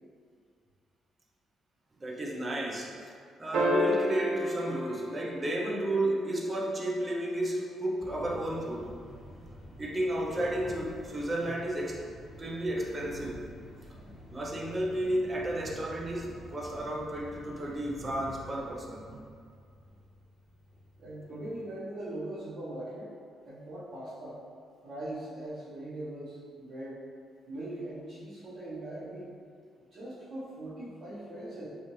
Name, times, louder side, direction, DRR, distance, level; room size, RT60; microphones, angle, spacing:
voice 1, 2.0-3.1 3.4-8.9 9.8-12.0 12.4-13.4 14.3-19.2, right 1 dB, 25° right, -1 dB, 0.5 m, -32 dB
sound 1, 3.5-6.1 8.3-8.4, left 1 dB, 85° right, 0.5 m, -30 dB
sound 2, 8.0-21.6, equal, 5° right, 1.4 m, -49 dB
voice 2, 21.0-23.1 23.5-24.4 24.8-27.0 27.5-29.3 29.9-31.7, right 1 dB, 50° right, -12 dB, 0.9 m, -40 dB
2.7 x 2.4 x 3.0 m, 2.1 s
cardioid pair, 90°, 0 cm